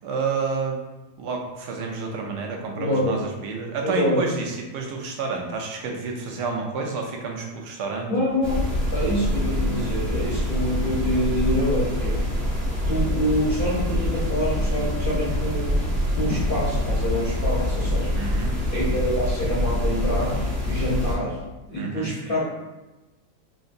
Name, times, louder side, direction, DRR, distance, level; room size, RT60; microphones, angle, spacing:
voice 1, 0.0-0.8 1.2-8.1 18.1-18.5 21.7-22.1, right 4 dB, 75° right, 1 dB, 1.2 m, -29 dB
voice 2, 2.7-3.3 3.8-4.3 8.1-8.7 8.9-12.3 12.8-15.8 16.2-18.2 18.7-21.4 21.7-22.4, equal, 55° left, -7 dB, 0.6 m, -26 dB
sound 1, 8.4-21.2, left 1 dB, 35° right, 0.6 m, -25 dB
3.7 x 2.7 x 2.4 m, 1.1 s
omnidirectional pair, 1.9 m